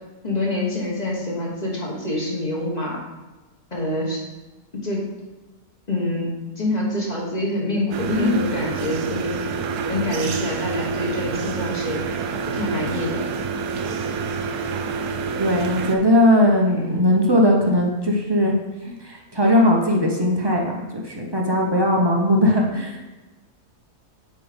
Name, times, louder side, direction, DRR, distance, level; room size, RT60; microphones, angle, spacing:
voice 1, 0.2-3.0 3.7-4.2 4.7-5.1 5.9-9.4 9.9-12.0 12.5-13.3 16.7-17.0, left 1 dB, 30° left, -3 dB, 1.4 m, -26 dB
sound 1, 7.9-16.0, right 5 dB, 85° right, 1.2 m, -27 dB
voice 2, 15.4-18.5 18.8-20.6 20.9-23.0, left 1 dB, 25° right, -1 dB, 0.6 m, -19 dB
8.4 x 3.2 x 5.1 m, 1.1 s
omnidirectional pair, 1.6 m